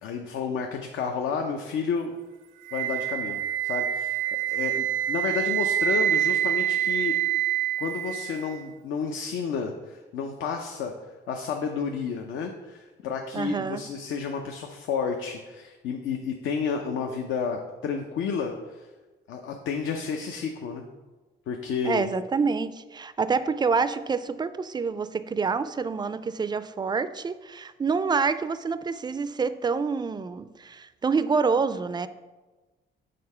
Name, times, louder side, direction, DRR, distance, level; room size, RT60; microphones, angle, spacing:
voice 1, 0.0-2.1 2.7-7.1 7.8-10.9 11.3-18.9 19.3-20.8 21.5-22.1, left 5 dB, 80° left, 3 dB, 0.6 m, -31 dB
Wind instrument woodwind instrument, 2.7-8.7, right 12 dB, 75° right, 0.5 m, -26 dB
voice 2, 13.3-13.8 21.8-32.1, right 5 dB, 20° right, 14 dB, 0.3 m, -27 dB
6.7 x 3.7 x 5.4 m, 1.2 s
cardioid pair, 90°, 20 cm